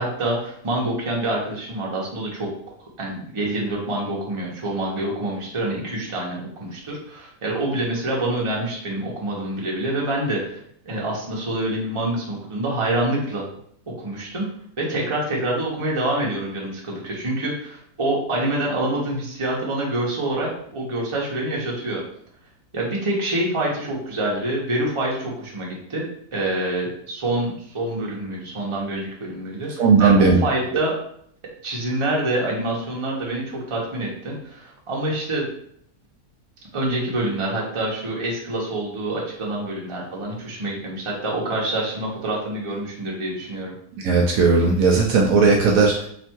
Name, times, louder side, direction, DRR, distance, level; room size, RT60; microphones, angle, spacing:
voice 1, 0.0-2.5 3.0-10.6 10.8-13.5 13.9-14.5 14.8-22.0 22.7-26.0 26.3-30.9 31.6-35.5 36.7-43.7, right 1 dB, 25° right, -3 dB, 0.8 m, -26 dB
voice 2, 29.8-30.4 44.0-46.1, right 4 dB, 75° right, 1 dB, 1.0 m, -16 dB
3.3 x 2.7 x 4.4 m, 0.66 s
omnidirectional pair, 1.6 m